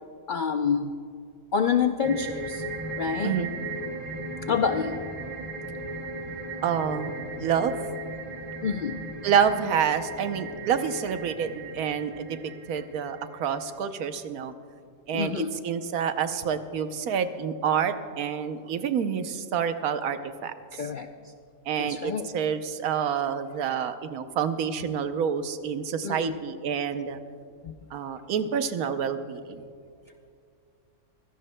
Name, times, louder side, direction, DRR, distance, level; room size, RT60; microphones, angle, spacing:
voice 1, 0.3-0.9 1.5-2.6 3.0-3.4 4.5-5.0 8.6-9.0 15.1-15.6 20.7-21.1 21.8-22.3 26.0-26.4 27.6-27.7, left 6 dB, 90° left, 7 dB, 0.4 m, -27 dB
sound 1, 2.0-13.6, right 2 dB, 25° right, 1.4 m, -37 dB
voice 2, 6.6-7.1 7.4-7.8 9.2-12.3 12.7-14.5 15.1-20.5 21.7-27.2 27.9-29.6, right 7 dB, 80° right, 9 dB, 1.2 m, -28 dB
24.0 x 17.0 x 2.2 m, 2.3 s
omnidirectional pair, 1.5 m